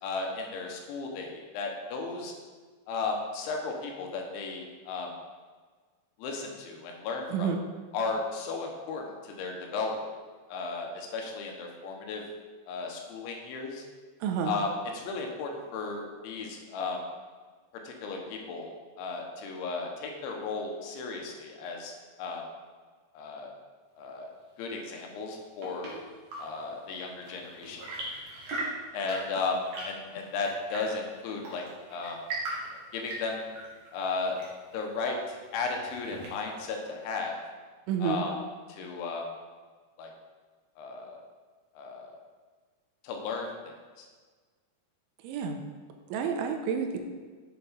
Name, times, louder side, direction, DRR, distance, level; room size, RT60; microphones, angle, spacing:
voice 1, 0.0-2.3 2.9-5.1 6.2-7.5 7.9-10.0 10.5-12.2 12.7-13.8 14.4-17.0 17.8-18.7 19.0-21.9 22.2-22.4 23.1-23.5 24.0-24.3 24.6-25.9 26.4-27.8 28.9-31.6 31.9-32.2 32.7-33.4 33.9-34.4 34.7-37.4 38.0-38.3 38.7-39.3 40.0-40.1 40.8-41.2 41.8-42.2 43.0-43.5 44.0-44.1, left 4 dB, 80° left, 1 dB, 3.4 m, -35 dB
voice 2, 7.3-7.6 14.2-14.6 37.9-38.2 45.2-45.6 46.1-47.0, right 6 dB, 90° right, 5 dB, 3.1 m, -29 dB
Chirp tweet / Engine / Tap, 25.2-36.7, right 2 dB, 50° right, 2.7 m, -41 dB
8.2 x 6.7 x 5.2 m, 1.5 s
omnidirectional pair, 5.5 m